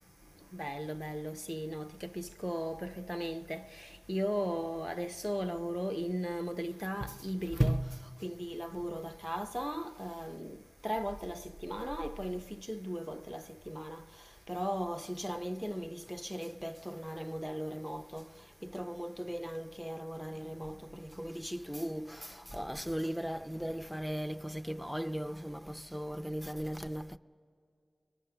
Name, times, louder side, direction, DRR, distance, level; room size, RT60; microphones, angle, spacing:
voice 1, 0.5-8.0 8.2-14.0 14.5-18.3 18.6-27.2, equal, ahead, 0.5 m, -37 dB
29.0 x 22.5 x 6.8 m
wide cardioid pair, 70°, 0 cm